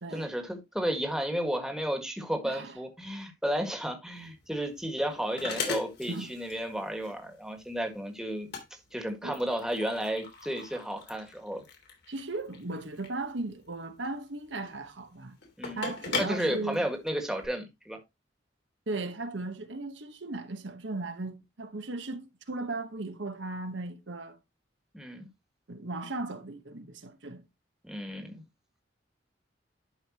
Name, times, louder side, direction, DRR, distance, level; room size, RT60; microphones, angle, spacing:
voice 1, 0.1-8.5 8.9-11.6 15.6-15.9 16.2-18.0 24.9-25.3 27.8-28.4, equal, 5° right, 1.7 m, -33 dB
voice 2, 2.4-2.8 6.1-6.3 9.2-9.4 12.1-15.4 15.8-16.9 18.9-24.4 25.7-27.4, right 2 dB, 75° right, 1.2 m, -37 dB
sound 1, 4.2-17.5, left 4 dB, 60° left, 2.9 m, -40 dB
11.5 x 5.2 x 2.9 m
head